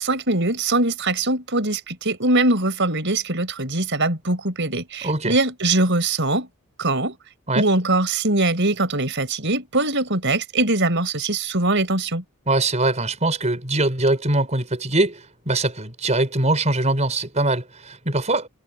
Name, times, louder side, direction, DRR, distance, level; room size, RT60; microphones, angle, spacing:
voice 1, 0.0-6.5 6.8-7.2 7.5-12.2, right 2 dB, 55° right, 5.1 m, -22 dB
voice 2, 5.0-5.4 7.5-7.7 12.5-18.5, right 2 dB, 30° right, 5.4 m, -22 dB
head